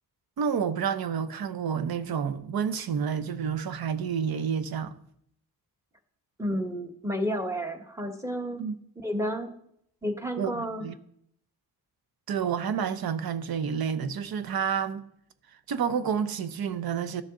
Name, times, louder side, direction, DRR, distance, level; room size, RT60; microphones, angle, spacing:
voice 1, 0.4-4.9 8.6-8.8 10.4-10.9 12.3-15.1 15.7-17.2, right 7 dB, 65° right, 0.8 m, -29 dB
voice 2, 6.4-8.6 9.0-9.5 10.0-10.9, equal, 5° right, 1.3 m, -31 dB
13.0 x 6.5 x 3.8 m
cardioid pair, 80°, 39 cm